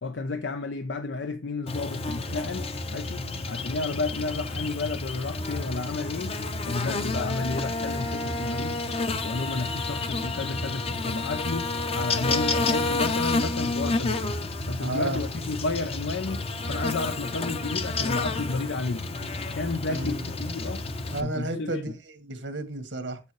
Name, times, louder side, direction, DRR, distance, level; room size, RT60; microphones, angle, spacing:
voice 1, 0.0-6.3 6.6-8.8 9.2-14.4 14.7-16.4 16.7-19.1 19.5-20.8 21.2-21.8, left 3 dB, 85° left, 0.7 m, -32 dB
Buzz, 1.7-21.2, left 3 dB, 35° left, 0.7 m, -30 dB
voice 2, 14.8-15.2 19.9-20.2 21.1-23.2, right 2 dB, 85° right, 1.7 m, -32 dB
8.3 x 6.8 x 3.2 m
head